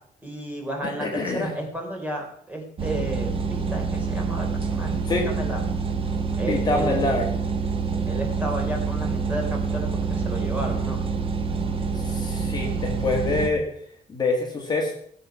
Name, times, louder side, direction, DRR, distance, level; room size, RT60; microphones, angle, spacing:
voice 1, 0.2-5.6 6.4-7.2 8.1-11.0, right 1 dB, 10° right, 1 dB, 3.3 m, -32 dB
voice 2, 0.8-1.5 5.0-5.3 6.5-7.3 12.0-13.7 14.1-14.9, left 3 dB, 25° left, 0 dB, 2.1 m, -25 dB
sound 1, 2.8-13.5, right 5 dB, 35° right, 1.4 m, -27 dB
19.0 x 7.9 x 5.7 m, 0.64 s
cardioid pair, 180°, 16 cm